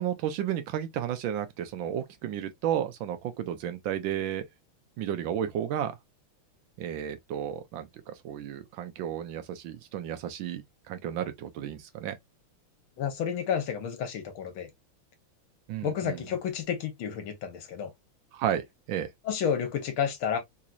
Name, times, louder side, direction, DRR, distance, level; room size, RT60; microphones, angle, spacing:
voice 1, 0.0-4.5 5.0-6.0 6.8-12.2 15.7-16.3 18.3-19.1, right 10 dB, 75° right, 1.3 m, -33 dB
voice 2, 13.0-14.7 15.8-17.9 19.3-20.4, left 7 dB, 70° left, 1.7 m, -30 dB
4.0 x 2.8 x 2.3 m
omnidirectional pair, 2.4 m